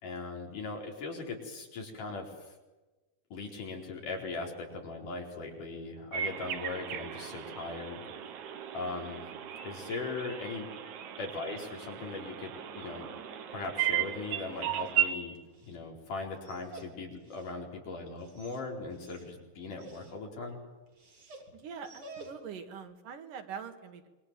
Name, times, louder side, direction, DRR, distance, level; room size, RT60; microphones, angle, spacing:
voice 1, 0.0-2.5 3.3-8.0 8.7-9.3 9.6-10.7 11.2-13.1 13.5-15.4 15.7-20.6, left 3 dB, 75° left, 1 dB, 5.9 m, -39 dB
sound 1, 6.1-15.1, right 10 dB, 70° right, 2.8 m, -36 dB
Dog, 14.5-22.7, right 2 dB, 40° right, 4.0 m, -53 dB
voice 2, 21.5-24.1, right 6 dB, 85° right, 6 dB, 3.6 m, -43 dB
27.0 x 23.0 x 7.6 m, 1.2 s
omnidirectional pair, 3.7 m